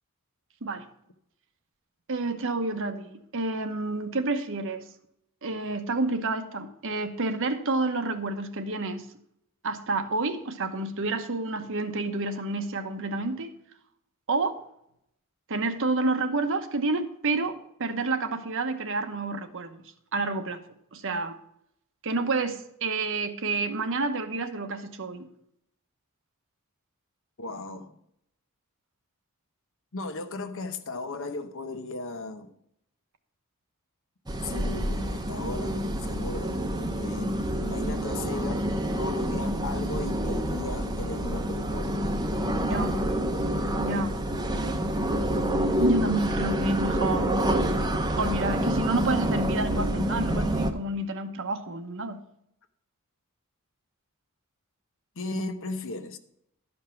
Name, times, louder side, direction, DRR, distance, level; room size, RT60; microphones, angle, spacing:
voice 1, 2.1-4.9 5.4-9.0 9.6-13.5 14.3-14.6 15.5-19.8 20.1-20.6 20.9-21.4 22.0-25.3 42.6-43.0 43.7-44.2 45.8-47.3 48.1-52.2, right 3 dB, 60° right, 1.0 m, -29 dB
voice 2, 27.4-28.0 29.9-32.5 34.4-38.7 38.9-42.1 55.2-56.2, left 2 dB, 60° left, 0.9 m, -36 dB
sound 1, 34.3-50.7, equal, 20° right, 0.8 m, -27 dB
12.0 x 5.4 x 5.8 m
head